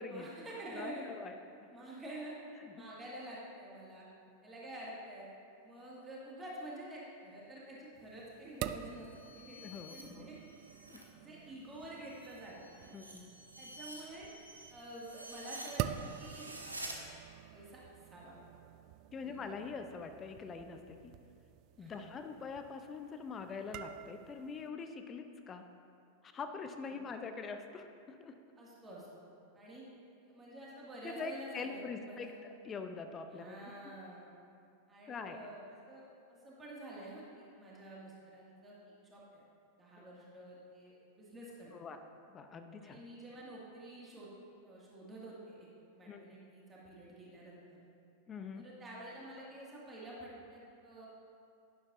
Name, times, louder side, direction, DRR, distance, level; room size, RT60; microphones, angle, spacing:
voice 1, 0.1-1.1 1.7-2.3 2.8-4.0 4.4-5.3 5.6-9.1 9.3-9.6 9.9-10.4 11.2-12.9 13.6-14.3 14.7-16.5 17.5-17.8 18.1-18.3 19.2-19.4 21.8-22.1 26.9-27.0 28.6-29.8 30.2-32.4 33.3-34.2 34.9-38.7 39.1-39.4 39.8-41.7 42.8-44.3 44.6-45.7 45.9-47.8 48.5-51.1, right 1 dB, 15° right, -6 dB, 2.0 m, -49 dB
voice 2, 0.7-1.4 2.6-2.8 9.6-10.3 10.9-11.1 12.9-13.3 19.1-21.1 21.8-25.6 26.3-28.4 31.0-33.6 33.8-33.9 35.1-35.5 40.0-40.1 41.7-42.0 42.3-43.0 46.1-46.2 48.3-48.7, left 4 dB, 25° left, 7 dB, 0.6 m, -44 dB
sound 1, 8.0-24.7, right 11 dB, 40° right, 0.3 m, -47 dB
sound 2, 8.7-11.1 11.5-17.0, right 1 dB, 80° right, 1.0 m, -50 dB
11.5 x 10.5 x 2.6 m, 2.4 s
figure-of-eight pair, 90°, 0 cm